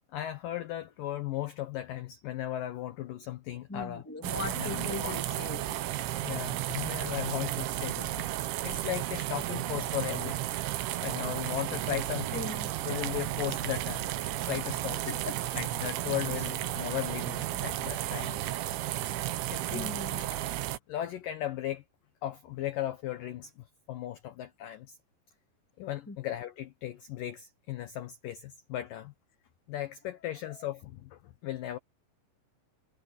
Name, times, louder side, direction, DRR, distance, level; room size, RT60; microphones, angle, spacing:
voice 1, 0.1-4.0 4.5-5.2 6.2-10.4 11.0-12.5 12.8-14.1 14.5-15.2 15.5-18.4 19.5-20.0 20.9-21.8 22.2-25.0 25.8-29.1 29.7-31.8, left 13 dB, 75° left, 2.0 m, -36 dB
voice 2, 3.7-5.8 12.3-12.7 15.1-15.4 17.5-17.7 19.7-20.4 26.1-26.2, left 3 dB, 5° left, 1.1 m, -39 dB
sound 1, 4.2-20.8, right 14 dB, 85° right, 3.6 m, -33 dB
omnidirectional pair, 5.2 m